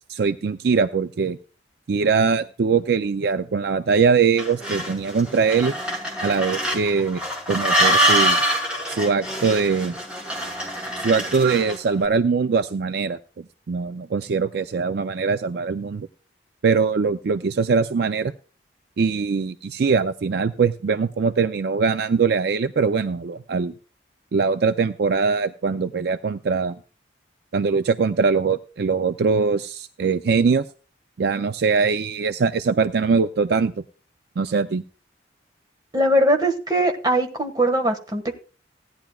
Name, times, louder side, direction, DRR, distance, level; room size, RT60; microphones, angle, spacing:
voice 1, 0.1-1.4 1.9-5.7 6.2-7.2 7.5-8.4 8.9-9.9 11.0-13.2 13.7-16.1 16.6-18.3 19.0-23.7 24.3-26.8 27.5-30.7 31.2-33.7 34.4-34.8, right 5 dB, 60° right, 10 dB, 0.4 m, -22 dB
sound 1, 4.4-11.9, right 1 dB, 5° right, 2.5 m, -24 dB
voice 2, 35.9-38.4, right 1 dB, 25° right, 5 dB, 1.5 m, -21 dB
16.5 x 10.5 x 2.3 m, 0.36 s
head